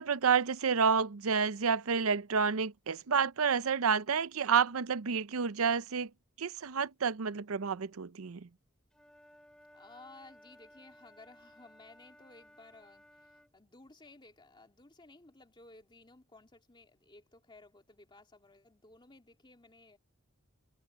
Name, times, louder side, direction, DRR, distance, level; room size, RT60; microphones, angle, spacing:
voice 1, 0.0-6.1 6.4-8.5, right 6 dB, 75° right, 0.6 m, -29 dB
Wind instrument woodwind instrument, 8.9-13.5, equal, 5° left, 3.6 m, -59 dB
voice 2, 9.7-20.0, left 2 dB, 20° left, 2.4 m, -57 dB
head